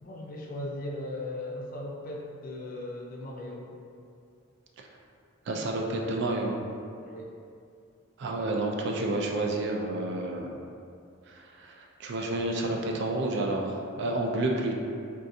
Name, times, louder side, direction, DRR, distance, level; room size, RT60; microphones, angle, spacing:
voice 1, 0.0-3.7 7.0-7.3, left 1 dB, 45° left, -1 dB, 0.4 m, -38 dB
voice 2, 5.5-6.6 8.2-10.5 11.3-14.7, right 2 dB, 60° right, 1 dB, 0.4 m, -30 dB
3.7 x 2.4 x 2.6 m, 2.4 s
head